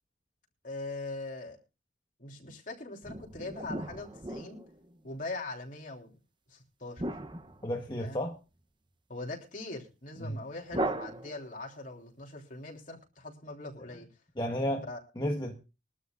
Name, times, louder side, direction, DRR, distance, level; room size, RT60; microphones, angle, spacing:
voice 1, 0.6-1.6 2.2-4.6 5.0-6.1 6.5-7.2 8.0-8.2 9.1-14.1 14.9-15.0, left 2 dB, 45° left, 1 dB, 3.3 m, -41 dB
sound 1, 3.0-5.1 7.0-8.4 10.7-11.7, right 1 dB, 25° right, 0.9 m, -37 dB
voice 2, 7.6-8.4 10.2-10.4 14.4-14.8 15.2-15.5, equal, 25° left, 1 dB, 1.3 m, -32 dB
22.0 x 12.5 x 2.5 m, 0.30 s
head